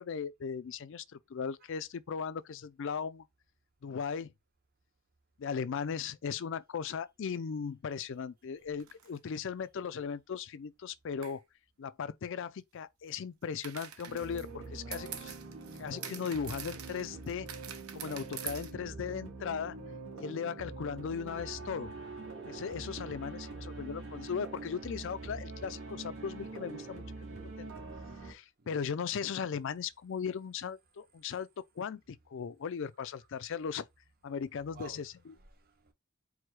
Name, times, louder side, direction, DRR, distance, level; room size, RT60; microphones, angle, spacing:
voice 1, 0.0-3.2 3.8-4.3 5.4-11.4 11.8-15.1 15.8-17.5 17.9-19.8 20.2-21.9 22.5-27.0 27.6-27.7 28.2-31.5 31.8-33.9 34.2-35.1, left 6 dB, 60° left, 0.4 m, -37 dB
sound 1, 8.8-9.2 11.2-11.4 13.6-18.7, right 8 dB, 85° right, 0.8 m, -45 dB
sound 2, 14.1-28.3, right 3 dB, 65° right, 1.6 m, -44 dB
voice 2, 14.8-15.2 18.3-18.9 28.6-28.9 33.2-33.3 34.7-35.9, right 4 dB, 45° right, 0.9 m, -56 dB
4.7 x 2.2 x 4.5 m
head